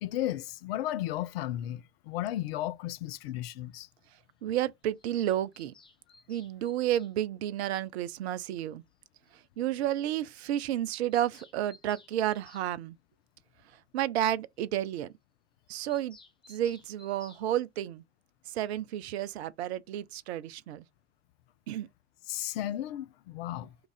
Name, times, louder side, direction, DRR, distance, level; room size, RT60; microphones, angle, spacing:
voice 1, 0.0-3.9 22.3-23.7, left 13 dB, 60° left, 0.5 m, -34 dB
voice 2, 4.4-5.7 6.3-8.8 9.3-13.0 13.7-15.1 15.7-16.2 16.5-18.0 18.5-20.8 21.7-21.9, right 12 dB, 65° right, 0.5 m, -31 dB
Bird vocalization bird call bird song, 5.0-7.1 8.6-8.7 8.9-9.0 9.2-9.3 9.6-9.7 10.0-10.1 10.3-10.5 10.7-12.7 15.9-17.5, left 3 dB, 15° left, 0.6 m, -58 dB
3.0 x 2.4 x 3.8 m
figure-of-eight pair, 65°, 35 cm